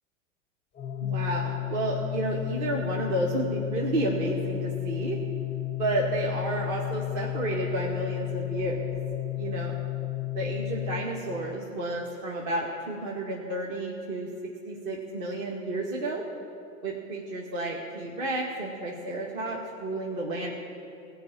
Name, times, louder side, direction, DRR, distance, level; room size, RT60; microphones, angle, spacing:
Organ, 0.8-11.7, left 17 dB, 15° left, 0.5 m, -33 dB
voice 1, 1.0-5.2 5.8-8.9 9.3-9.7 10.3-14.3 14.7-16.2 16.8-20.5, right 2 dB, 50° right, -4 dB, 2.2 m, -31 dB
17.5 x 5.8 x 9.0 m, 2.7 s
hypercardioid pair, 105°, 39 cm